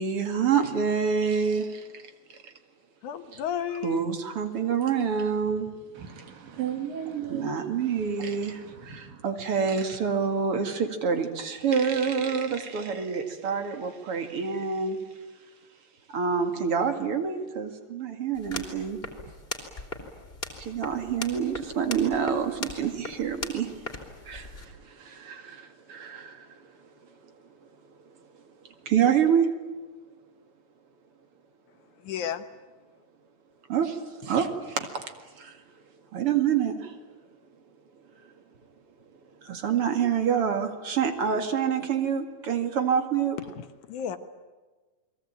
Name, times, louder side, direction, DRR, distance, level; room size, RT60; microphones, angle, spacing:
voice 1, 0.0-2.0 2.3-2.5 3.8-5.7 7.3-15.0 16.1-19.0 20.6-23.7 24.2-26.6 28.8-29.5 33.7-35.0 35.3-35.6 36.1-37.0 39.4-43.4, right 7 dB, 45° right, 2.7 m, -27 dB
voice 2, 3.0-4.3 32.0-32.5 43.6-44.2, left 9 dB, 70° left, 2.5 m, -33 dB
voice 3, 5.9-9.2, right 10 dB, 85° right, 4.2 m, -36 dB
sound 1, 18.3-24.7, left 2 dB, 15° left, 3.5 m, -39 dB
29.5 x 22.5 x 8.9 m
omnidirectional pair, 3.9 m